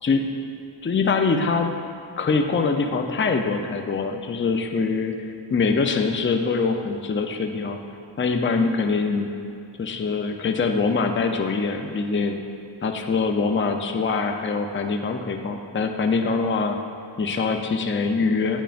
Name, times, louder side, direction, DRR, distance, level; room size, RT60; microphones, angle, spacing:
voice 1, 0.0-0.4 0.8-1.7 2.2-5.1 5.5-7.8 8.2-9.3 9.8-12.4 12.8-16.8 17.2-18.6, left 4 dB, 25° left, 4 dB, 0.5 m, -23 dB
9.1 x 8.9 x 2.5 m, 2.5 s
cardioid pair, 70°, 48 cm